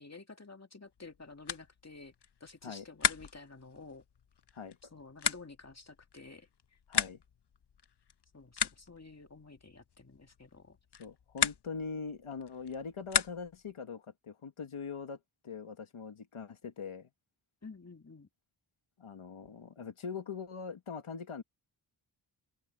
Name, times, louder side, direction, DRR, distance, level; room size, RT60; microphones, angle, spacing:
voice 1, 0.0-2.1 2.4-4.0 4.9-6.5 8.3-10.8 17.6-18.3, left 3 dB, 30° left, 2.5 m, -51 dB
sound 1, 0.9-13.7, left 7 dB, 55° left, 0.8 m, -38 dB
voice 2, 6.9-7.2 11.0-17.1 19.0-21.4, left 5 dB, 90° left, 1.8 m, -42 dB
wide cardioid pair, 65°, 48 cm